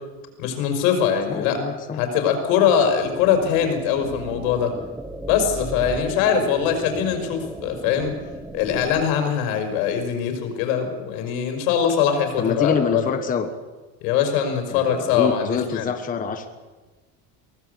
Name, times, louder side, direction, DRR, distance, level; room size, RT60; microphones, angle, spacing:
voice 1, 0.4-1.6 2.0-4.7 5.3-8.1 8.5-13.1 14.0-15.9, left 8 dB, 80° left, 6 dB, 5.6 m, -22 dB
voice 2, 1.3-2.0 12.4-13.5 14.7-16.5, left 6 dB, 20° left, 6 dB, 1.2 m, -26 dB
sound 1, 3.0-9.0, right 2 dB, 5° right, 0.7 m, -35 dB
23.5 x 17.5 x 8.2 m, 1.3 s
cardioid pair, 165°, 40 cm